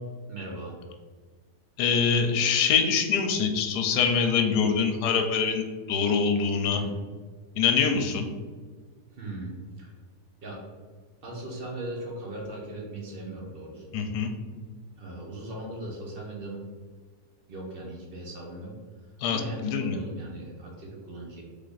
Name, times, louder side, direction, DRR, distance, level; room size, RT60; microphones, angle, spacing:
voice 1, 0.3-0.8 4.6-4.7 6.7-6.9 9.1-10.0 10.4-10.6 11.2-13.9 15.0-16.6 17.5-18.7 19.2-21.4, right 2 dB, 45° right, -2 dB, 0.9 m, -38 dB
voice 2, 1.8-6.8 7.6-8.3 13.9-14.3 19.2-19.9, left 6 dB, 85° left, 5 dB, 1.2 m, -24 dB
3.4 x 3.3 x 3.9 m, 1.5 s
omnidirectional pair, 1.7 m